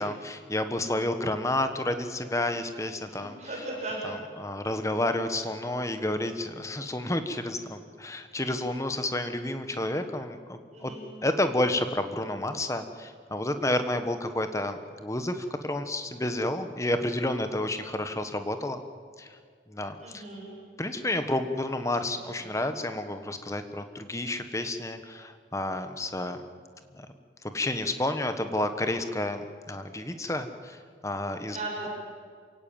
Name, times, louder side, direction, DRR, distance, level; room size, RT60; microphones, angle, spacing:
voice 1, 0.0-3.4 4.0-10.9 11.2-18.8 19.2-19.3 19.7-20.2 20.8-26.4 27.0-27.1 27.5-30.8 31.0-31.6, left 1 dB, 15° left, 8 dB, 1.3 m, -30 dB
voice 2, 3.1-4.0 10.7-11.0 20.0-20.6 22.1-22.3 31.4-31.9, right 2 dB, 40° right, -4 dB, 7.8 m, -38 dB
27.0 x 17.0 x 8.8 m, 2.1 s
head